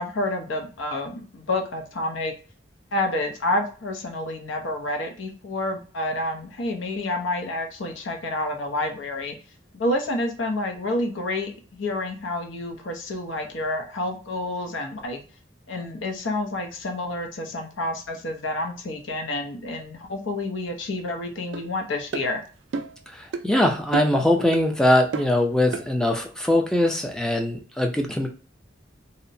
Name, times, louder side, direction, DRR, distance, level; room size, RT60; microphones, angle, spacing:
voice 1, 0.0-2.3 2.9-9.3 9.7-15.2 15.7-22.4, left 1 dB, 85° left, 4 dB, 0.6 m, -29 dB
sound 1, 21.5-21.7 22.1-22.3 22.7-23.0 23.3-23.5 23.9-24.2 24.5-24.7 25.1-25.4 25.7-25.9, right 3 dB, 75° right, 0.3 m, -29 dB
voice 2, 23.1-28.3, left 1 dB, 5° left, 3 dB, 0.3 m, -22 dB
2.8 x 2.1 x 2.5 m, 0.38 s
head